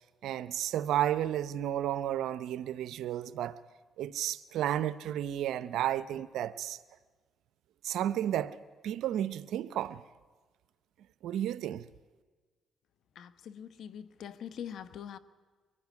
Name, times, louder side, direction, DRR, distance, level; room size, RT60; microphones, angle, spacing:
voice 1, 0.2-3.6 4.0-6.8 7.8-8.6 8.8-10.0 11.2-11.8, right 11 dB, 80° right, 0.7 m, -32 dB
voice 2, 13.1-15.2, left 9 dB, 70° left, 1.1 m, -43 dB
23.5 x 18.0 x 9.6 m
cardioid pair, 90°, 0 cm